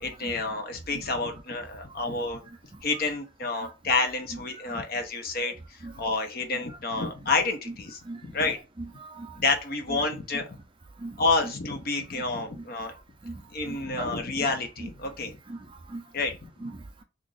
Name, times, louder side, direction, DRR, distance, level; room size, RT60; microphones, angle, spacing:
voice 1, 0.0-2.4 2.8-8.6 9.4-10.4 11.2-12.9 13.5-15.4 16.1-16.5, left 3 dB, 45° left, 0.7 m, -29 dB
voice 2, 6.5-7.0 7.7-7.8 8.1-8.5 8.8-9.4 9.9-10.0 11.0-11.2 11.4-11.5 12.1-12.2 12.5-12.6 13.2-13.4 13.7-14.1 14.8-14.9 15.5-15.6 15.9-16.0 16.6-17.0, right 2 dB, 25° right, 0.4 m, -39 dB
3.0 x 2.5 x 3.8 m
head